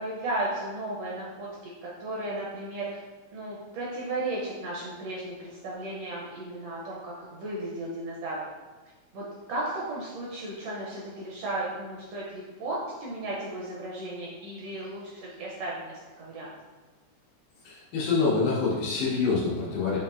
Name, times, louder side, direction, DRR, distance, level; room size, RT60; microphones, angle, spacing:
voice 1, 0.0-1.5 1.8-2.9 3.3-8.4 9.1-16.5, right 1 dB, 75° right, -5 dB, 1.5 m, -35 dB
voice 2, 17.6-20.0, left 4 dB, 90° left, -6 dB, 2.7 m, -26 dB
6.9 x 2.8 x 2.4 m, 1.2 s
omnidirectional pair, 3.5 m